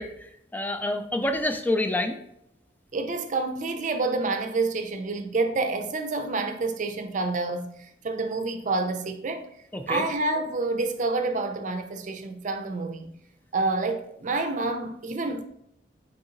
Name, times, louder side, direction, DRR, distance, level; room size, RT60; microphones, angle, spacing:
voice 1, 0.0-2.2 9.7-10.0, left 1 dB, 10° left, 0.4 m, -28 dB
voice 2, 2.9-7.7 8.0-9.4 9.9-13.1 13.5-15.4, right 3 dB, 45° right, 0.5 m, -28 dB
4.6 x 3.9 x 2.5 m
head